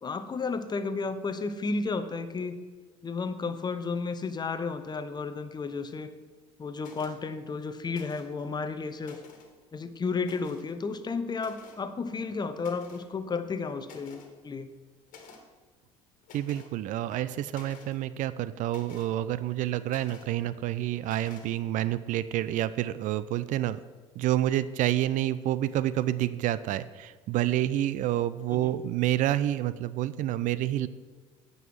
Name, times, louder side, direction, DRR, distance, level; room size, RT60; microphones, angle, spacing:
voice 1, 0.0-2.6 3.0-6.1 6.6-9.2 9.7-14.7 28.5-28.8, left 4 dB, 30° left, 10 dB, 0.8 m, -33 dB
sound 1, 6.8-7.2 7.9-8.4 8.9-9.5 10.2-10.7 11.4-11.8 12.6-13.1 13.5-13.6 13.8-14.3 15.1-15.4 16.2-16.7 17.1-18.0 18.7-19.1 19.9-20.3 21.0-21.5, left 5 dB, 60° left, 1.6 m, -51 dB
voice 2, 16.3-23.8 24.2-30.9, right 13 dB, 55° right, 16 dB, 0.4 m, -28 dB
9.3 x 5.5 x 6.1 m, 1.4 s
hypercardioid pair, 70°, 15 cm